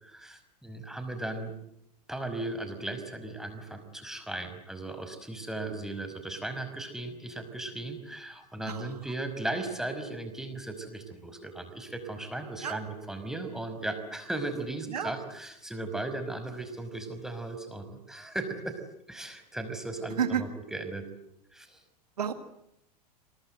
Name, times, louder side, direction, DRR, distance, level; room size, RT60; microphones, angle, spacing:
voice 1, 0.0-1.5 2.1-18.7 19.1-21.1 21.5-21.8, right 2 dB, ahead, 7 dB, 5.4 m, -37 dB
voice 2, 8.7-9.0 12.6-12.8 14.9-15.2 20.2-20.4 22.2-22.3, right 8 dB, 70° right, 10 dB, 2.0 m, -30 dB
28.0 x 24.0 x 8.0 m, 0.78 s
figure-of-eight pair, 85°, 21 cm